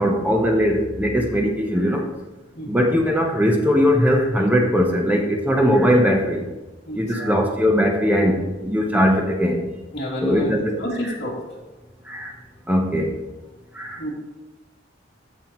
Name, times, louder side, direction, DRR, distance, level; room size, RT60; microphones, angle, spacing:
voice 1, 0.0-2.0 2.7-6.4 6.9-9.6 10.2-10.8 11.0-11.1 12.1-12.3 12.7-13.1 13.7-14.0, equal, 10° right, 2 dB, 0.8 m, -20 dB
voice 2, 6.9-7.3 9.9-10.5 10.8-11.4 14.0-14.1, equal, 60° left, -5 dB, 2.7 m, -29 dB
15.0 x 5.5 x 3.1 m, 1.1 s
head